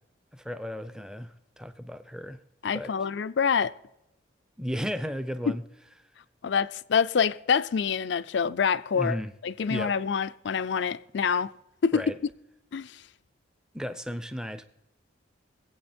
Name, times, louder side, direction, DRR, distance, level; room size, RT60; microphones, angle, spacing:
voice 1, 0.3-2.4 2.7-2.9 4.6-5.6 8.9-9.3 9.7-9.9 11.9-12.2 13.7-14.6, equal, 5° right, 0.6 m, -34 dB
voice 2, 2.6-3.7 5.5-5.6 6.4-11.5 11.8-12.0 12.7-13.0, left 6 dB, 70° left, 0.4 m, -26 dB
22.5 x 8.5 x 4.4 m
head